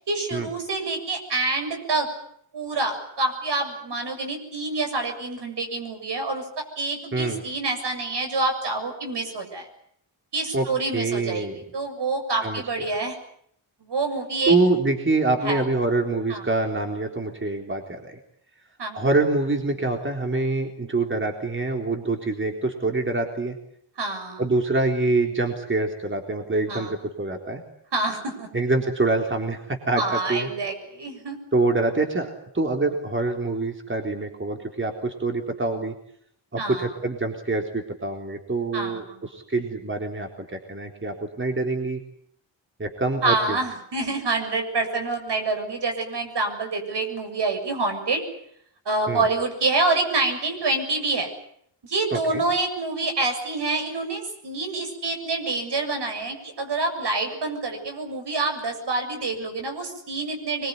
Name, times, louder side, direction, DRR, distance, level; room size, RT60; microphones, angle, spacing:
voice 1, 0.0-2.1 2.5-9.7 10.3-13.2 13.8-14.5 15.4-15.6 16.3-16.5 18.8-19.1 24.0-24.4 26.7-26.9 27.9-28.5 30.0-31.4 36.6-36.9 38.7-39.3 43.2-48.2 48.9-51.3 51.8-60.7, right 3 dB, 60° right, 5 dB, 7.3 m, -27 dB
voice 2, 10.9-11.6 12.4-12.6 14.5-18.2 18.9-23.6 24.4-27.6 28.5-30.5 31.5-32.3 32.5-35.9 36.5-42.0 42.8-43.6 49.1-49.2 52.1-52.4, right 2 dB, 25° right, 3 dB, 3.8 m, -25 dB
24.0 x 22.0 x 9.6 m, 0.69 s
cardioid pair, 90°, 45 cm